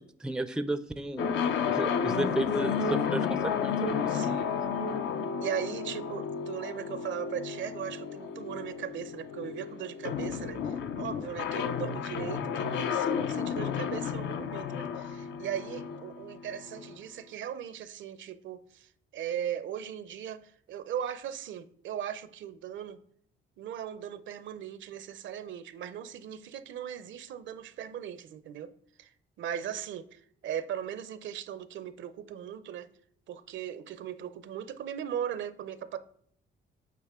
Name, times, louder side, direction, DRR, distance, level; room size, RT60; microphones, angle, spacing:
voice 1, 0.2-4.4, right 1 dB, 5° right, 0.4 m, -33 dB
sound 1, 1.2-16.9, left 6 dB, 70° left, 0.6 m, -32 dB
voice 2, 4.1-4.6 5.4-23.0 23.6-28.7 29.0-32.9 33.3-36.0, right 9 dB, 70° right, 0.6 m, -38 dB
8.3 x 4.3 x 3.6 m
cardioid pair, 90°, 20 cm